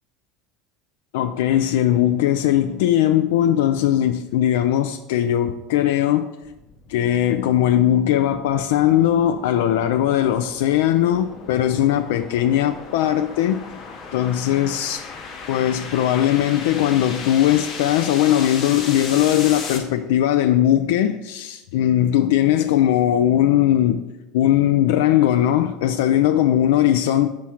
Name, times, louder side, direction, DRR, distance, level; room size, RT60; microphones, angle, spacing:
voice 1, 1.1-6.3 6.9-13.6 14.1-15.1 15.5-24.0 24.3-27.3, left 11 dB, 80° left, 0.3 m, -19 dB
sound 1, 6.4-19.8, left 5 dB, 35° left, 0.9 m, -36 dB
6.2 x 4.4 x 5.6 m
cardioid pair, 180°, 0 cm